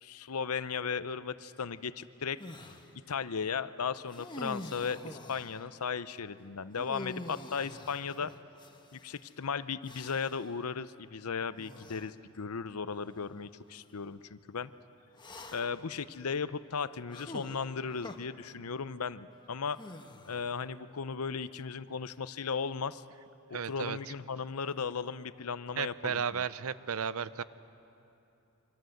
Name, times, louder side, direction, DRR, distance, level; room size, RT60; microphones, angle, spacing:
voice 1, 0.0-2.4 3.1-8.3 8.9-14.7 15.5-19.8 20.3-23.0 23.5-26.4, left 5 dB, 80° left, 14 dB, 0.7 m, -36 dB
sound 1, 2.4-2.9 4.1-5.6 6.8-9.1 9.8-10.5 11.6-12.1 12.9-13.1 15.2-15.9 17.1-18.2 19.7-20.6, left 1 dB, 20° left, 1.2 m, -45 dB
voice 2, 23.5-24.0 25.8-27.4, right 7 dB, 70° right, 15 dB, 0.7 m, -34 dB
27.0 x 24.0 x 7.9 m, 3.0 s
head